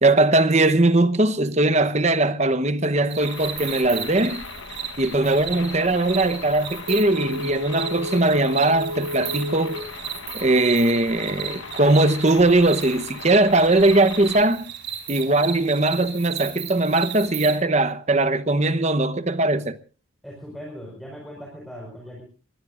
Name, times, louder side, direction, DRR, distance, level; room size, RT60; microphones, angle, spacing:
voice 1, 0.0-4.4 5.0-9.8 10.3-14.7 15.1-19.8, right 2 dB, 35° right, 1.0 m, -20 dB
sound 1, 3.1-17.6, right 9 dB, 60° right, 4.6 m, -35 dB
sound 2, 3.2-14.4, left 5 dB, 70° left, 1.2 m, -39 dB
Telephone, 6.9-9.9 10.3-10.4, left 1 dB, 90° right, 3.1 m, -32 dB
voice 2, 20.2-22.2, equal, ahead, 5.1 m, -39 dB
24.5 x 20.5 x 2.5 m
head